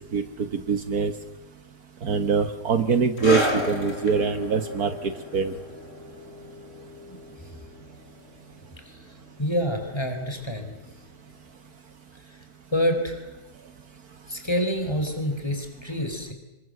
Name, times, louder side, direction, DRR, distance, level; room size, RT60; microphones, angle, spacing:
voice 1, 0.1-1.1 2.0-5.5, right 6 dB, 65° right, 9 dB, 1.8 m, -24 dB
sound 1, 3.2-10.2 10.4-10.7 11.4-11.5, left 2 dB, 45° left, 4.8 m, -33 dB
voice 2, 7.0-7.5 8.9-10.7 12.3-12.4 12.7-13.4 14.3-16.3, equal, 15° left, 5 dB, 4.6 m, -28 dB
28.0 x 22.5 x 7.9 m, 0.97 s
omnidirectional pair, 1.8 m